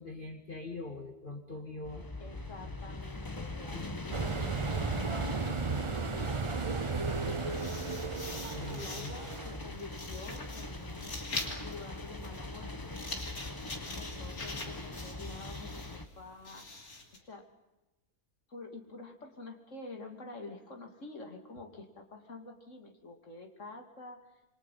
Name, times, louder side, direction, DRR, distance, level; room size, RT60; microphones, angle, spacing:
voice 1, 0.0-2.1 3.7-3.9 8.5-9.1, left 2 dB, 35° left, 3 dB, 2.0 m, -42 dB
sound 1, 1.8-16.1, left 2 dB, 15° left, 1.1 m, -42 dB
voice 2, 2.2-4.5 4.9-5.2 5.9-6.3 7.3-7.7 8.8-11.2 11.4-13.0 13.7-15.9 16.2-16.6 17.1-17.5 18.5-24.2, left 3 dB, 50° left, 2 dB, 3.2 m, -48 dB
sound 2, 4.1-9.7, right 4 dB, 35° right, 0.5 m, -34 dB
sound 3, 7.2-17.2, left 2 dB, 65° left, 3.6 m, -44 dB
28.0 x 23.5 x 5.8 m, 1.0 s
omnidirectional pair, 1.7 m